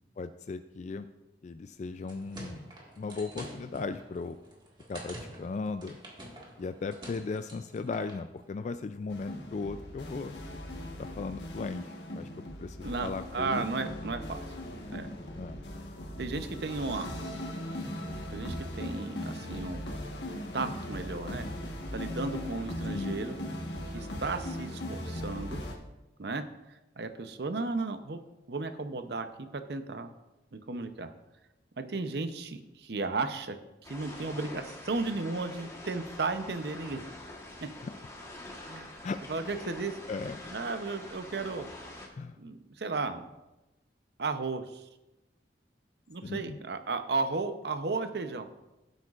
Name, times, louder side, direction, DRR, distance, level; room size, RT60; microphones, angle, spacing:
voice 1, 0.2-1.1 1.4-2.7 3.0-4.4 4.9-6.0 6.6-10.4 11.0-12.3 12.6-13.7 15.4-15.6 22.9-23.2 37.8-37.9 39.0-39.6 40.1-40.4 42.2-42.4 46.2-46.6, left 4 dB, 40° left, 10 dB, 0.3 m, -37 dB
sound 1, 1.9-8.2, right 1 dB, 25° right, 1.8 m, -47 dB
sound 2, 9.1-25.8, left 1 dB, 75° left, 1.3 m, -39 dB
voice 2, 12.8-14.4 14.9-15.1 16.2-17.1 18.3-19.8 20.3-21.5 21.9-23.4 23.9-25.6 26.2-26.4 27.0-28.2 28.5-30.1 30.5-31.1 31.8-33.6 33.8-37.0 37.6-37.7 38.7-38.9 39.3-40.0 40.5-41.7 42.4-43.2 44.2-44.8 46.1-48.4, right 3 dB, 65° right, 9 dB, 0.7 m, -34 dB
sound 3, 33.8-42.1, left 1 dB, 15° left, 1.3 m, -45 dB
15.5 x 8.0 x 2.5 m, 1.0 s
head